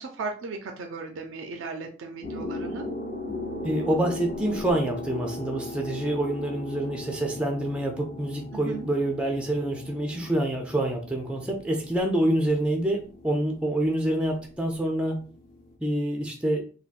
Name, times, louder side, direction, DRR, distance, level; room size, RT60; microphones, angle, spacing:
voice 1, 0.0-2.9 8.5-8.9, right 4 dB, 85° right, 4 dB, 0.4 m, -36 dB
sound 1, 2.2-15.8, left 2 dB, 50° left, 0.6 m, -38 dB
voice 2, 3.6-15.2 15.8-16.6, right 1 dB, 5° right, 2 dB, 0.3 m, -27 dB
3.4 x 2.2 x 2.4 m, 0.39 s
head